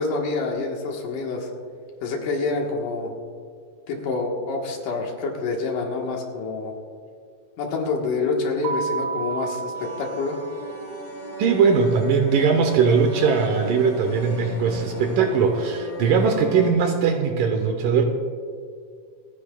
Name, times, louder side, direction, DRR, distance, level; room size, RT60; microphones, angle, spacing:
voice 1, 0.0-1.5 2.0-3.1 3.9-6.7 7.6-10.4, left 3 dB, 65° left, 0 dB, 2.8 m, -27 dB
Keyboard (musical), 8.6-11.2, right 5 dB, 55° right, 1.9 m, -31 dB
sound 1, 9.7-16.7, left 1 dB, 40° left, 2.3 m, -35 dB
voice 2, 11.4-18.0, right 5 dB, 75° right, 5 dB, 2.2 m, -20 dB
27.5 x 10.0 x 2.3 m, 2.1 s
omnidirectional pair, 4.3 m